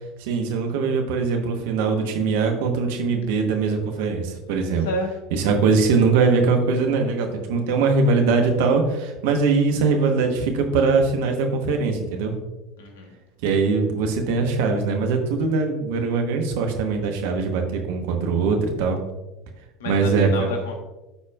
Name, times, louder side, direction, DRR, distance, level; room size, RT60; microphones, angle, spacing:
voice 1, 0.2-4.9 5.3-12.4 13.4-19.0 19.8-20.5, right 4 dB, 65° right, 4 dB, 1.1 m, -21 dB
voice 2, 4.6-5.1 12.8-13.1 19.8-20.8, left 1 dB, 70° left, 4 dB, 1.2 m, -30 dB
12.5 x 4.3 x 2.4 m, 1.1 s
figure-of-eight pair, 70°, 0 cm